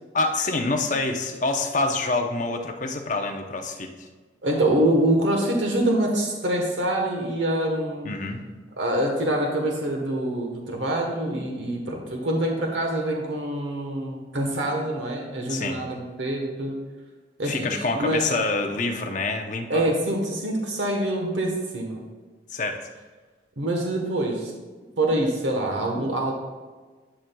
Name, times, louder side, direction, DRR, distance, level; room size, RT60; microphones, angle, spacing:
voice 1, 0.1-4.1 8.0-8.4 15.5-15.8 17.4-19.8 22.5-22.9, left 3 dB, 45° left, 4 dB, 0.7 m, -26 dB
voice 2, 4.4-8.1 8.8-16.7 17.4-18.2 19.7-22.0 23.6-24.5 25.0-26.3, right 1 dB, 90° right, 1 dB, 1.1 m, -25 dB
11.5 x 6.1 x 2.3 m, 1.4 s
head